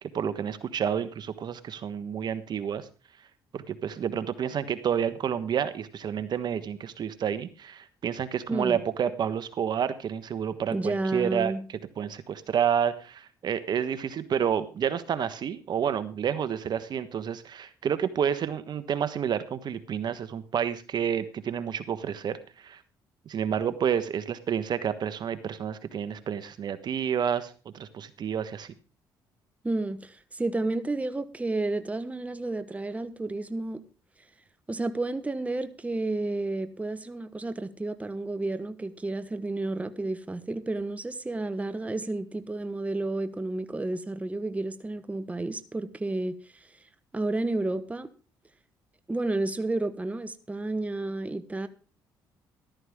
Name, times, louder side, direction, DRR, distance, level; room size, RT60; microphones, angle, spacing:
voice 1, 0.0-2.9 3.5-11.5 12.0-22.8 23.3-28.7, right 8 dB, 55° right, 12 dB, 1.2 m, -29 dB
voice 2, 8.5-8.8 10.7-11.6 29.6-33.8 34.7-46.7 47.1-48.1 49.1-51.7, right 2 dB, 15° right, 11 dB, 1.1 m, -31 dB
14.0 x 13.0 x 3.6 m, 0.35 s
supercardioid pair, 75°, 9 cm